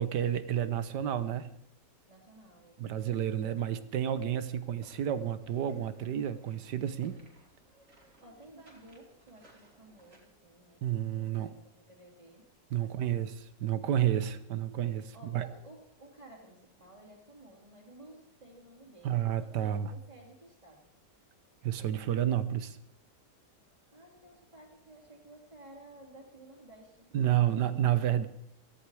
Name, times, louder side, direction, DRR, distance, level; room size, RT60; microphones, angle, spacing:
voice 1, 0.0-1.5 2.8-7.2 10.8-11.5 12.7-13.3 13.6-15.5 19.0-19.9 21.6-22.8 27.1-28.3, right 10 dB, 75° right, 13 dB, 1.5 m, -30 dB
voice 2, 2.1-2.9 8.2-12.5 12.8-13.2 13.8-14.2 15.1-20.9 23.9-27.8, right 1 dB, 20° right, -6 dB, 2.9 m, -55 dB
sound 1, 4.8-10.2, right 2 dB, 45° right, 3.4 m, -62 dB
17.0 x 14.5 x 4.8 m, 0.71 s
omnidirectional pair, 1.9 m